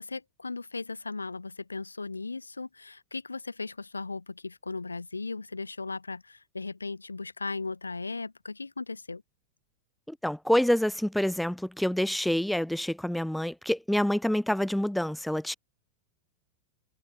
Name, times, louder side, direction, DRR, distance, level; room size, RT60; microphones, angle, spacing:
voice 1, 0.0-9.2, left 3 dB, 80° left, 2.6 m, -37 dB
voice 2, 10.1-15.5, left 1 dB, ahead, 0.8 m, -27 dB
figure-of-eight pair, 90°, 0 cm